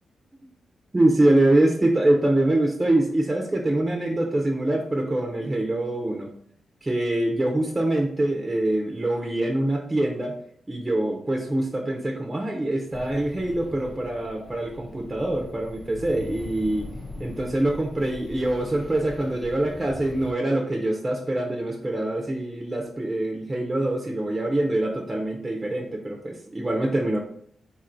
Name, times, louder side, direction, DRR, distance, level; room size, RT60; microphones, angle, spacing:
voice 1, 0.9-6.3 6.8-10.3 10.7-16.9 17.2-27.2, right 1 dB, 15° right, 0 dB, 0.5 m, -24 dB
sound 1, 12.9-20.3, left 2 dB, 35° left, 0.5 m, -41 dB
4.0 x 2.6 x 4.3 m, 0.64 s
wide cardioid pair, 135°, 0 cm